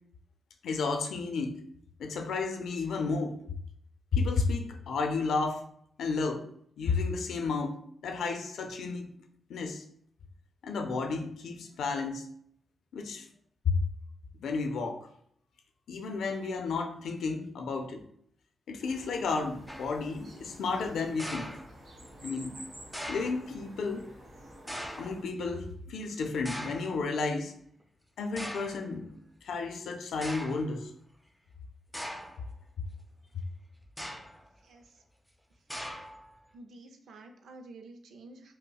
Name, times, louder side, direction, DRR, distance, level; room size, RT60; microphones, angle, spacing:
voice 1, 0.6-1.6 2.0-3.4 4.1-5.6 6.0-6.4 6.8-9.1 9.5-9.8 10.6-12.3 12.9-13.3 13.7-13.8 14.4-15.1 15.9-18.0 18.7-21.5 22.2-22.6 23.1-24.1 24.9-27.5 28.2-29.2 29.4-30.9, left 4 dB, 90° left, 4 dB, 0.4 m, -32 dB
sound 1, 18.8-25.2, right 1 dB, 60° right, 1.2 m, -50 dB
sound 2, 19.7-20.1 21.2-22.1 22.9-23.5 24.7-25.2 26.4-27.0 27.8-27.9 28.4-28.8 29.7-29.8 30.2-30.7 31.9-32.5 33.9-34.5 35.7-36.3, equal, ahead, 0.5 m, -40 dB
voice 2, 34.6-35.0 36.5-38.5, right 2 dB, 90° right, 5 dB, 0.5 m, -50 dB
5.3 x 2.1 x 2.3 m, 0.66 s
cardioid pair, 90°, 0 cm